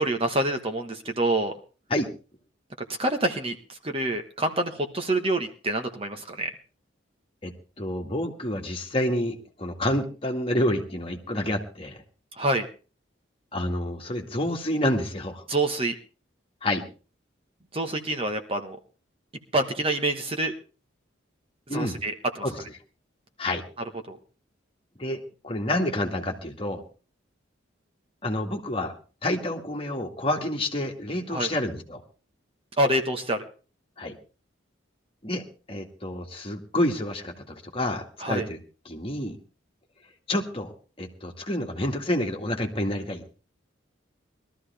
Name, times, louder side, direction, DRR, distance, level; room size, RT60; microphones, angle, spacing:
voice 1, 0.0-1.5 2.9-6.5 12.4-12.7 15.5-15.9 17.7-18.8 19.5-20.5 21.7-22.4 24.1-24.2 31.3-31.5 32.8-33.5 38.2-38.5, right 1 dB, 30° right, 6 dB, 1.2 m, -27 dB
voice 2, 7.4-12.0 13.5-15.4 16.6-16.8 21.7-22.0 22.4-22.6 23.4-23.6 25.0-26.8 28.2-28.9 29.2-32.0 34.0-34.2 35.2-38.6 38.9-39.4 40.3-40.7 41.0-43.2, left 1 dB, 30° left, 2 dB, 2.0 m, -28 dB
21.0 x 13.5 x 3.5 m, 0.36 s
head